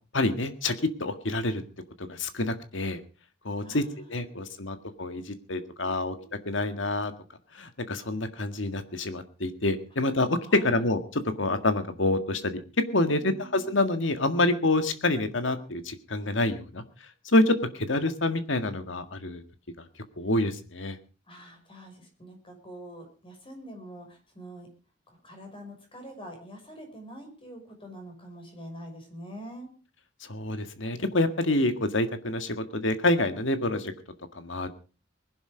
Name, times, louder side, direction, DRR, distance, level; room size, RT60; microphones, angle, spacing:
voice 1, 0.1-1.6 2.0-3.0 3.5-3.8 4.1-6.2 6.5-7.1 7.5-12.6 12.9-16.8 17.3-19.4 20.2-21.0 30.3-33.9 34.4-34.7, left 2 dB, 75° left, 9 dB, 1.8 m, -27 dB
voice 2, 3.6-4.7 5.8-6.3 10.5-10.8 13.0-13.7 21.3-24.7 25.1-29.7, right 1 dB, 30° left, 4 dB, 5.8 m, -45 dB
20.5 x 11.5 x 5.1 m, 0.36 s
head